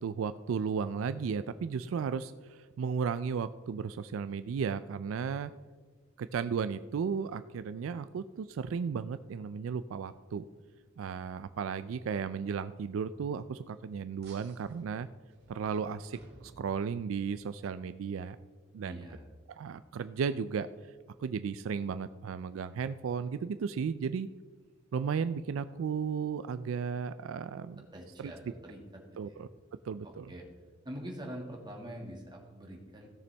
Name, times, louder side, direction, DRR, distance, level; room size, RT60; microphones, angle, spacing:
voice 1, 0.0-5.5 6.2-10.5 11.0-15.1 15.5-18.4 18.7-19.1 19.5-20.7 21.2-24.3 24.9-27.9 28.2-28.3 29.2-29.5 29.8-30.3, right 6 dB, 75° right, 13 dB, 0.3 m, -34 dB
sound 1, 14.2-17.4, right 2 dB, 55° right, 2.0 m, -58 dB
voice 2, 18.8-19.3 27.9-28.8 29.2-29.4 30.0-30.5 30.8-33.1, equal, 20° right, 0 dB, 1.8 m, -44 dB
16.0 x 6.9 x 3.4 m, 1.4 s
head